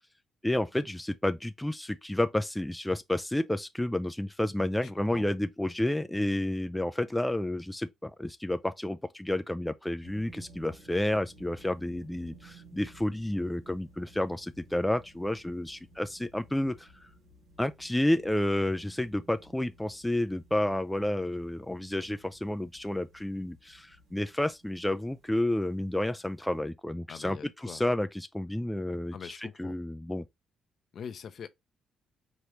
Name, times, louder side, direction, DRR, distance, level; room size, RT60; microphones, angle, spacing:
voice 1, 0.4-17.1 17.6-27.4 27.6-29.3 29.6-30.2, left 1 dB, 5° left, 0.4 m, -30 dB
voice 2, 4.7-5.3 27.1-27.8 29.1-29.8 30.9-31.5, left 7 dB, 55° left, 0.6 m, -43 dB
sound 1, 10.0-26.6, right 2 dB, 85° right, 2.5 m, -57 dB
5.0 x 3.0 x 3.1 m
cardioid pair, 90°, 0 cm